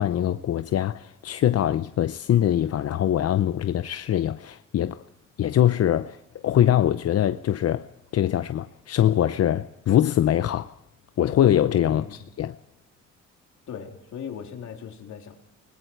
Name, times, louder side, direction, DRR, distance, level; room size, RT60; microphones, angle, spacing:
voice 1, 0.0-5.0 5.4-6.2 6.4-7.9 8.1-10.7 11.2-12.6, left 11 dB, 55° left, 0.7 m, -23 dB
voice 2, 13.7-15.4, left 7 dB, 70° left, 3.6 m, -38 dB
29.0 x 20.0 x 4.7 m
cardioid pair, 90°, 30 cm